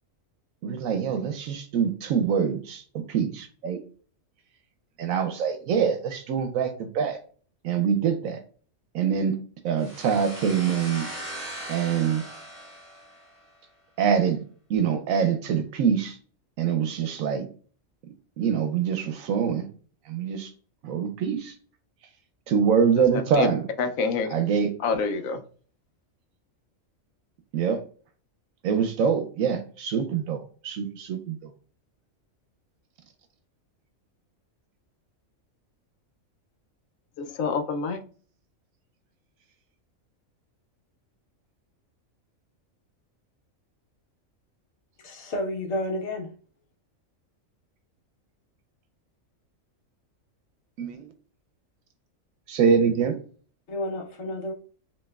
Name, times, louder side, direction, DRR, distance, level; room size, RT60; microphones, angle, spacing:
voice 1, 0.6-2.8 3.1-3.8 5.0-7.2 7.6-8.4 8.9-9.3 9.6-11.1 11.7-12.2 14.0-14.4 14.7-16.2 16.6-17.5 18.4-19.7 20.1-20.5 20.8-21.5 22.5-23.6 24.3-24.7 27.5-27.8 28.6-31.4 50.8-51.1 52.5-53.1, right 7 dB, 80° right, 1.0 m, -24 dB
sound 1, 9.8-13.5, right 1 dB, 30° right, 1.6 m, -39 dB
voice 2, 23.0-23.5 23.8-24.3 24.8-25.4 37.2-38.0, left 5 dB, 80° left, 1.0 m, -27 dB
voice 3, 45.0-46.3 53.7-54.5, left 1 dB, 60° left, 1.1 m, -31 dB
5.3 x 2.9 x 2.3 m
omnidirectional pair, 1.4 m